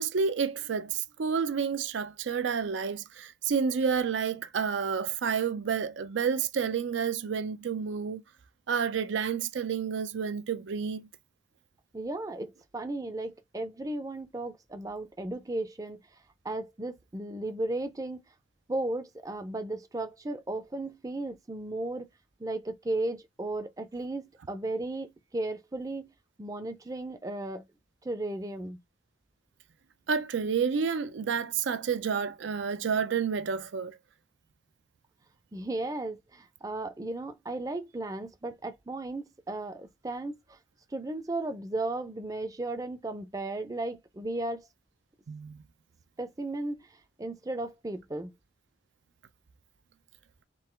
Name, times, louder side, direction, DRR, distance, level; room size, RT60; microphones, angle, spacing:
voice 1, 0.0-8.2 8.7-11.1 30.1-34.0 45.3-45.6, right 6 dB, 75° right, 0.5 m, -30 dB
voice 2, 11.9-16.0 16.4-18.2 18.7-22.1 22.4-26.1 26.4-27.7 28.0-28.8 35.5-40.3 40.9-44.7 46.2-46.8 47.2-48.3, right 2 dB, 20° right, 0.5 m, -35 dB
3.8 x 2.8 x 4.3 m
head